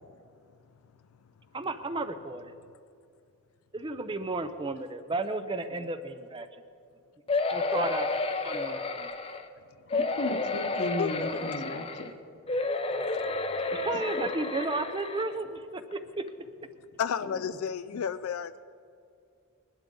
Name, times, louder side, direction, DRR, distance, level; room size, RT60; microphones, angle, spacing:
voice 1, 1.5-2.6 3.7-6.5 7.5-8.1 8.4-9.1 13.7-16.2, right 2 dB, 20° right, 10 dB, 0.5 m, -33 dB
sound 1, 7.3-9.4 9.9-12.1 12.5-15.3 15.9-16.0 16.3-16.4, left 3 dB, 25° left, 0.6 m, -31 dB
voice 2, 9.9-12.1 13.9-14.0 17.9-18.0, left 1 dB, 50° left, 6 dB, 1.0 m, -35 dB
voice 3, 11.0-11.5 13.0-13.9 17.0-18.6, left 7 dB, 75° left, 13 dB, 0.4 m, -33 dB
20.0 x 11.5 x 3.8 m, 2.4 s
head